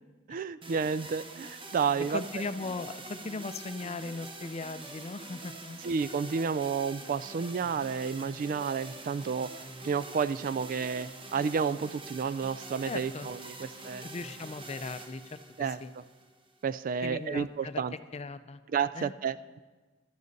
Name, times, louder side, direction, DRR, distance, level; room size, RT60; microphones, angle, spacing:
voice 1, 0.3-2.2 5.8-9.5 9.8-14.1 15.6-15.8 16.6-17.9 18.7-19.6, right 6 dB, 45° right, 16 dB, 0.3 m, -31 dB
sound 1, 0.6-16.6, right 2 dB, 25° right, 0.9 m, -45 dB
voice 2, 2.1-5.9 12.9-13.3 13.6-13.7 14.0-15.9 17.0-17.8 18.1-18.6 18.9-19.1, left 3 dB, 35° left, 11 dB, 0.5 m, -38 dB
14.5 x 12.5 x 4.0 m, 1.3 s
head